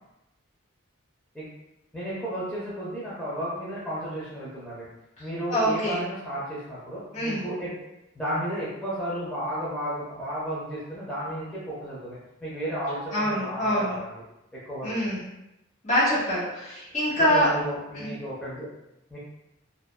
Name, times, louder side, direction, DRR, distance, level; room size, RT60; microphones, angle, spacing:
voice 1, 1.9-4.9 5.2-7.7 8.1-14.2 14.5-14.9 17.1-18.7 19.1-19.2, equal, 5° left, -10 dB, 0.5 m, -33 dB
voice 2, 5.2-6.0 7.1-7.5 13.1-14.0 14.8-15.3 15.8-17.5 17.9-18.1, equal, 35° left, -9 dB, 1.2 m, -25 dB
2.6 x 2.1 x 2.2 m, 0.90 s
head